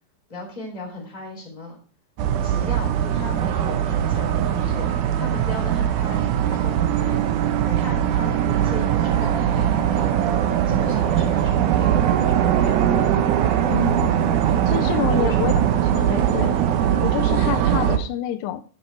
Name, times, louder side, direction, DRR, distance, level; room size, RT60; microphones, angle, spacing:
voice 1, 0.3-1.8 2.4-10.3 10.7-12.9 15.0-15.6 16.1-16.4, left 1 dB, 10° left, 2.9 m, -36 dB
sound 1, 2.2-18.0, right 10 dB, 70° right, 1.9 m, -21 dB
voice 2, 13.7-14.2 14.7-15.5 15.9-16.6 17.0-18.6, left 12 dB, 85° left, 2.7 m, -28 dB
13.5 x 6.4 x 4.6 m
omnidirectional pair, 4.7 m